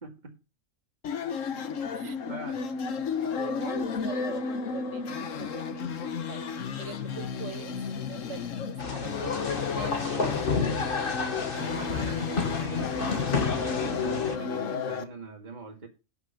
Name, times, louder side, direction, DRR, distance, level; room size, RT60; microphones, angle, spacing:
voice 1, 0.0-0.3 2.0-2.7 7.1-7.3 11.6-15.9, right 3 dB, 35° right, 2 dB, 2.3 m, -41 dB
sound 1, 1.0-15.0, left 6 dB, 70° left, 1.3 m, -33 dB
voice 2, 3.3-6.4 6.8-11.0, right 8 dB, 65° right, 13 dB, 1.2 m, -44 dB
sound 2, 8.8-14.4, left 4 dB, 45° left, 1.6 m, -30 dB
11.5 x 6.1 x 5.7 m, 0.30 s
omnidirectional pair, 1.4 m